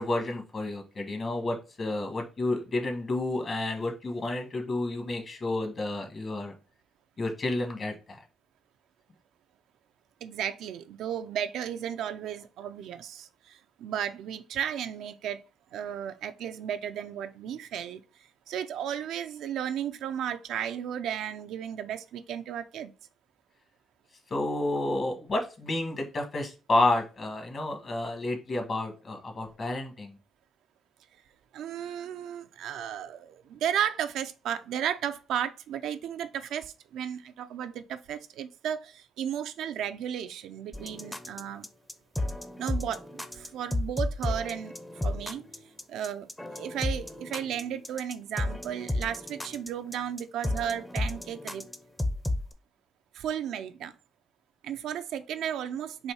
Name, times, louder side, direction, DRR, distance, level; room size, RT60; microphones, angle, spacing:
voice 1, 0.0-6.5 7.2-8.2 24.3-30.1, left 2 dB, 45° left, 1.3 m, -30 dB
voice 2, 10.2-15.4 15.7-18.0 18.5-22.9 31.5-41.6 42.6-44.7 45.0-45.4 45.9-51.6 53.1-53.9 54.6-56.1, right 9 dB, 80° right, 0.4 m, -34 dB
sound 1, 40.7-52.5, left 1 dB, 10° left, 0.6 m, -33 dB
4.2 x 2.7 x 4.5 m
cardioid pair, 90°, 0 cm